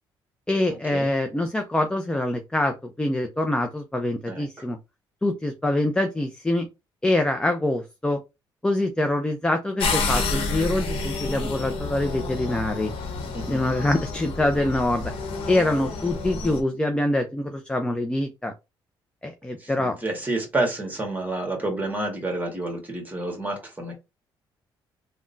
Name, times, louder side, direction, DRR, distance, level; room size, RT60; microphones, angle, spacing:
voice 1, 0.5-4.8 5.2-6.7 7.0-8.2 8.6-12.9 13.5-15.1 15.5-18.5 19.2-20.0, left 1 dB, 10° left, 0.4 m, -25 dB
sound 1, 9.8-16.6, left 3 dB, 80° left, 0.9 m, -29 dB
voice 2, 13.3-13.7 19.6-23.9, right 2 dB, 20° right, 1.3 m, -29 dB
3.5 x 2.1 x 2.5 m
cardioid pair, 95°, 9 cm